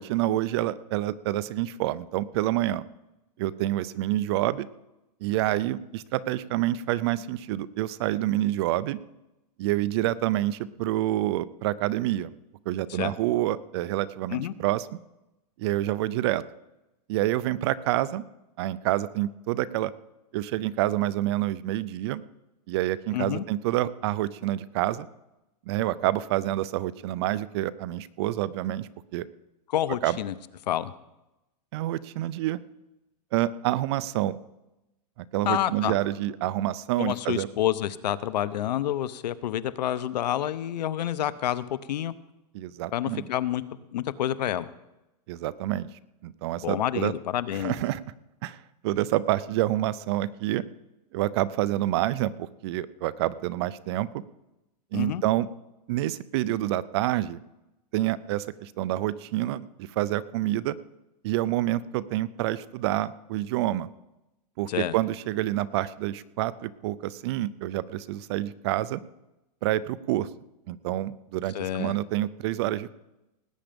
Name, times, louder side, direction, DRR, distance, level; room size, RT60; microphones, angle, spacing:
voice 1, 0.0-2.8 3.4-4.7 5.2-9.0 9.6-12.3 12.7-14.9 15.6-16.4 17.1-18.2 18.6-19.9 20.3-22.2 22.7-25.1 25.7-29.3 30.0-30.2 31.7-32.6 33.3-34.4 35.2-37.5 42.5-43.3 45.3-45.9 46.2-47.1 47.6-48.0 48.4-50.6 51.1-54.2 54.9-55.5 55.9-57.4 57.9-60.7 61.2-63.9 64.6-69.0 69.6-70.3 70.7-73.0, right 14 dB, 40° right, 17 dB, 0.5 m, -27 dB
voice 2, 23.1-23.4 29.7-30.3 30.7-30.9 35.4-36.0 37.0-42.1 42.9-44.7 46.6-47.8 54.9-55.2 64.7-64.9 71.5-71.9, left 12 dB, 80° left, 16 dB, 0.8 m, -28 dB
18.5 x 8.8 x 5.2 m, 0.95 s
supercardioid pair, 160°, 21 cm